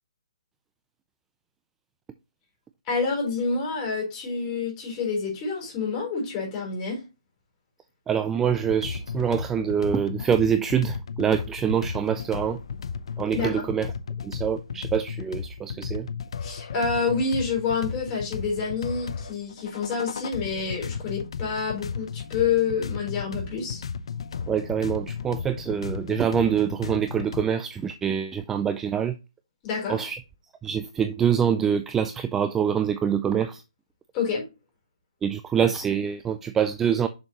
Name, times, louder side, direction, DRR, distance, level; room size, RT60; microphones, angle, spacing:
voice 1, 2.9-7.0 13.3-13.6 16.4-23.8 29.6-30.0 34.1-34.4, left 5 dB, 20° left, 4.0 m, -28 dB
voice 2, 8.1-12.6 13.2-13.9 14.2-16.1 24.5-29.2 29.9-30.2 30.6-33.6 35.2-37.1, right 8 dB, 10° right, 0.3 m, -25 dB
sound 1, 8.4-27.4, left 6 dB, 60° left, 0.7 m, -35 dB
6.8 x 6.4 x 2.8 m
hypercardioid pair, 150°, 3 cm